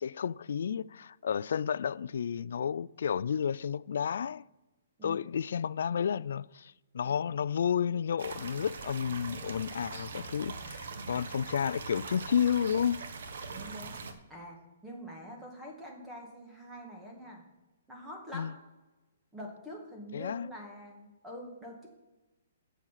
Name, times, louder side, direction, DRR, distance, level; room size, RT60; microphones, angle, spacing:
voice 1, 0.0-4.4 5.0-13.0 18.3-18.5 20.1-20.5, left 8 dB, 65° left, 0.3 m, -31 dB
sound 1, 8.2-14.1, right 4 dB, 65° right, 1.2 m, -42 dB
voice 2, 13.5-13.9 14.3-17.4 17.9-18.5 19.3-21.9, equal, 5° right, 1.8 m, -45 dB
7.8 x 7.3 x 5.7 m
hypercardioid pair, 165°, 0 cm